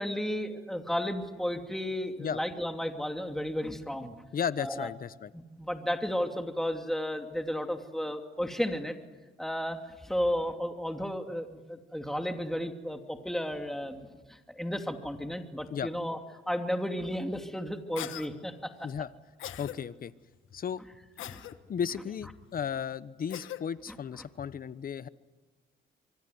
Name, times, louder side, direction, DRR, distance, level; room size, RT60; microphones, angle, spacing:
voice 1, 0.0-4.1 4.6-4.9 5.3-9.0 9.4-9.8 10.0-16.2 16.5-18.7 21.3-21.5 23.9-24.0, equal, ahead, 5 dB, 2.7 m, -33 dB
voice 2, 4.3-5.3 15.7-15.9 18.8-19.1 19.6-20.1 20.5-20.8 21.7-25.1, left 7 dB, 45° left, 16 dB, 1.1 m, -34 dB
Cough, 18.0-18.3 19.4-19.8 21.2-21.5 23.3-23.6, left 12 dB, 80° left, 1.5 m, -39 dB
25.0 x 24.0 x 9.6 m, 1.2 s
cardioid pair, 90°, 20 cm